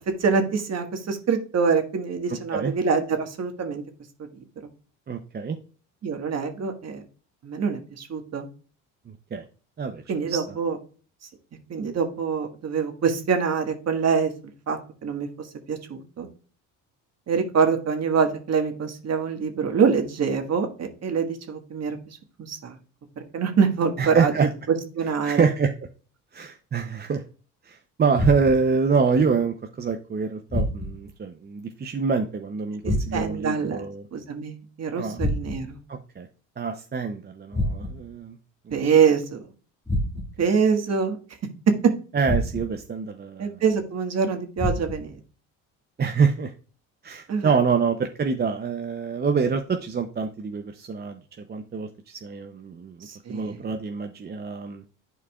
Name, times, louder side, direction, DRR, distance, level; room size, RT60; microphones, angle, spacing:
voice 1, 0.1-3.8 6.0-7.0 7.4-8.5 10.1-10.8 11.7-16.3 17.3-22.8 23.2-24.3 24.7-25.5 32.8-33.8 34.1-35.8 38.7-39.5 40.4-41.2 43.4-45.2 47.3-47.5 53.0-53.6, right 6 dB, 45° right, 5 dB, 1.6 m, -25 dB
voice 2, 5.1-5.6 9.3-9.4 9.8-10.0 10.3-10.6 24.0-24.5 25.2-25.7 26.3-27.2 27.6-34.1 35.0-35.2 35.9-36.3 36.6-38.4 40.4-40.5 42.1-43.5 46.0-46.5 47.0-51.2 51.5-54.8, right 5 dB, 25° right, 6 dB, 0.7 m, -26 dB
sound 1, 28.1-28.8 30.5-31.1 32.8-33.5 35.2-35.8 37.5-38.2 39.9-40.5 42.2-42.9 44.6-45.2, left 1 dB, 10° left, 1.8 m, -28 dB
11.5 x 4.6 x 2.4 m, 0.38 s
supercardioid pair, 80°, 38 cm